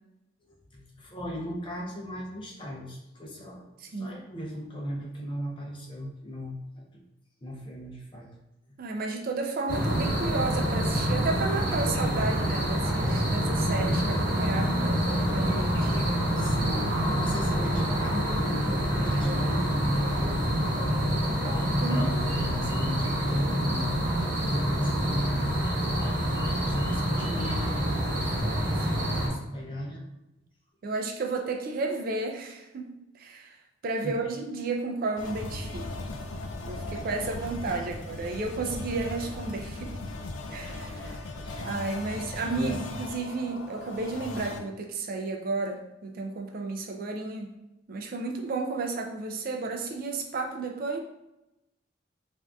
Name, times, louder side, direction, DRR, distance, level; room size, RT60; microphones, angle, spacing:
voice 1, 0.7-3.7 4.0-7.0 7.4-8.4 16.3-19.8 20.1-20.5 21.8-24.0 24.4-25.7 26.5-28.3 28.6-30.0 34.0-34.1 37.8-37.9 41.4-41.7 42.5-42.8, equal, 25° left, -2 dB, 0.6 m, -37 dB
voice 2, 3.8-4.2 8.8-16.0 21.8-22.2 30.8-33.5 33.8-35.9 36.7-40.0 40.5-41.2 41.6-47.5 47.9-51.0, right 3 dB, 50° right, 3 dB, 0.4 m, -32 dB
sound 1, 9.7-29.3, equal, 70° right, 1.1 m, -26 dB
sound 2, 35.2-44.6, left 2 dB, 85° left, 0.4 m, -38 dB
3.5 x 2.5 x 2.3 m, 0.90 s
head